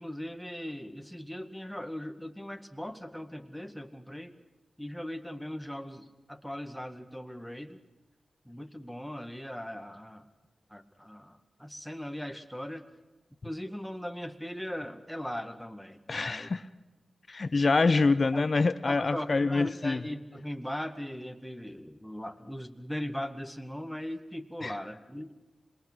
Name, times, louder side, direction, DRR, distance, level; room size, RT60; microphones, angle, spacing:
voice 1, 0.0-4.4 4.8-7.8 8.5-10.3 10.7-12.9 13.4-16.5 18.3-18.4 18.9-25.3, equal, ahead, 8 dB, 1.9 m, -39 dB
voice 2, 16.1-16.6 17.3-20.0 24.6-24.7, left 3 dB, 50° left, 13 dB, 0.9 m, -26 dB
26.5 x 21.0 x 6.3 m, 1.1 s
cardioid pair, 55°, 0 cm